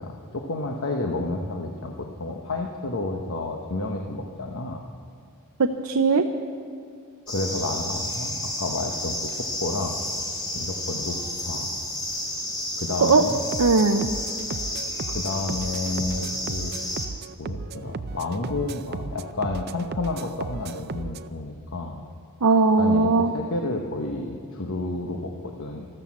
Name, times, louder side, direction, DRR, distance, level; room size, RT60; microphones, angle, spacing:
voice 1, 0.0-4.8 7.3-10.0 10.5-11.7 12.8-13.4 15.1-17.0 17.4-22.0 22.8-25.9, left 2 dB, 60° left, 2 dB, 1.1 m, -31 dB
voice 2, 5.6-6.2 13.0-13.2 13.6-14.1 22.4-23.3, right 3 dB, 80° right, 4 dB, 0.7 m, -19 dB
sound 1, 7.3-17.1, left 1 dB, 20° left, 2.6 m, -31 dB
sound 2, 13.5-21.3, right 4 dB, 45° right, 0.5 m, -36 dB
13.5 x 13.0 x 7.3 m, 2.4 s
head